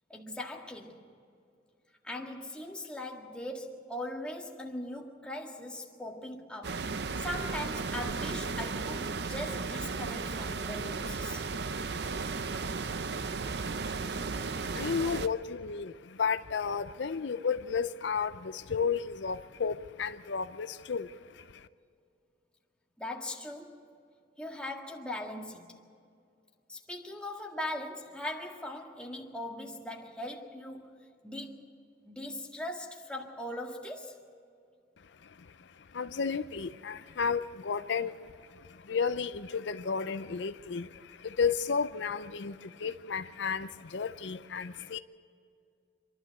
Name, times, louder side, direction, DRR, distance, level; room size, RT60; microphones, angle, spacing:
voice 1, 0.1-1.0 2.0-6.8 7.2-11.4 23.0-23.8 24.4-25.8 26.7-31.7 32.1-34.2, left 1 dB, 5° left, 1.8 m, -40 dB
sound 1, 6.6-15.3, right 4 dB, 65° right, 0.6 m, -35 dB
voice 2, 13.9-21.7 35.2-45.0, left 5 dB, 80° left, 0.6 m, -33 dB
26.5 x 12.0 x 8.2 m
head